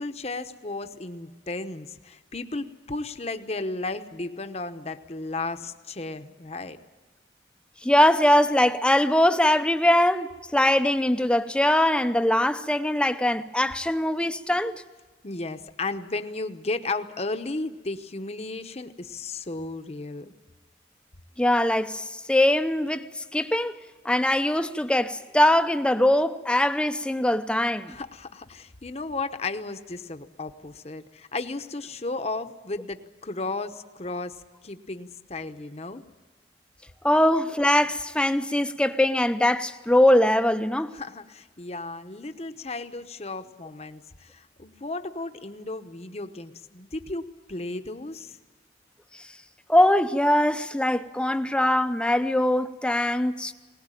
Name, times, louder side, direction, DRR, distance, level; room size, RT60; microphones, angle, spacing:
voice 1, 0.0-6.8 15.2-20.3 27.8-36.0 40.9-48.4, left 3 dB, 35° left, 1.0 m, -34 dB
voice 2, 7.8-14.8 21.4-23.8 24.0-28.0 37.0-40.9 49.7-53.5, left 1 dB, 5° left, 0.6 m, -22 dB
20.5 x 19.5 x 9.1 m
head